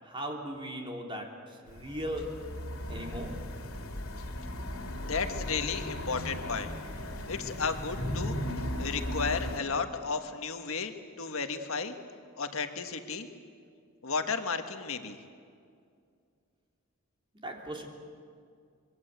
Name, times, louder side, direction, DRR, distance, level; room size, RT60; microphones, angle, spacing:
voice 1, 0.0-2.4 2.9-3.4 17.4-17.9, equal, 25° right, 1 dB, 3.4 m, -38 dB
sound 1, 1.7-9.6, left 1 dB, 90° left, 3.0 m, -37 dB
voice 2, 5.0-6.7 7.3-8.4 8.8-10.9 11.2-11.9 12.4-13.3 14.0-15.2, left 5 dB, 70° left, 7 dB, 1.6 m, -33 dB
25.5 x 22.5 x 8.2 m, 2.3 s
head